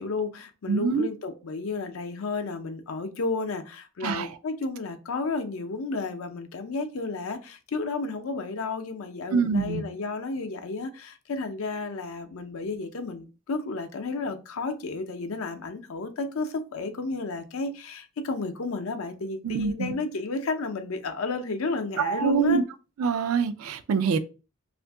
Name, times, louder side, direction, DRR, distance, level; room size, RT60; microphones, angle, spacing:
voice 1, 0.0-22.6, left 3 dB, 75° left, 0.5 m, -32 dB
voice 2, 0.7-1.1 4.0-4.3 9.3-9.8 19.4-19.9 22.0-22.6 23.0-24.2, right 5 dB, 85° right, 0.4 m, -25 dB
2.6 x 2.5 x 3.4 m
head